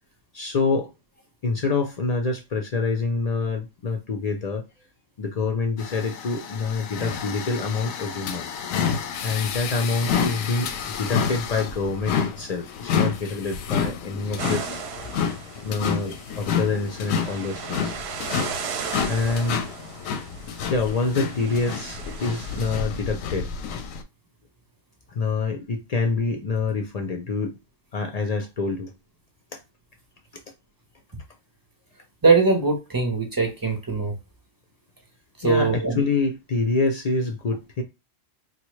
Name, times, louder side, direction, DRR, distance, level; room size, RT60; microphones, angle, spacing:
voice 1, 0.3-0.9 1.4-4.6 5.2-8.5 9.2-14.8 15.6-18.0 19.1-19.6 20.7-23.5 25.1-27.6 27.9-28.9 29.5-29.6 35.4-37.8, left 4 dB, 65° left, 0.3 m, -26 dB
sound 1, 5.8-24.0, left 6 dB, 90° left, 1.0 m, -29 dB
sound 2, 14.4-22.8, right 6 dB, 65° right, 0.7 m, -37 dB
voice 2, 32.2-34.1 35.4-36.0, right 4 dB, 25° right, 0.5 m, -21 dB
4.1 x 2.2 x 3.0 m
omnidirectional pair, 1.3 m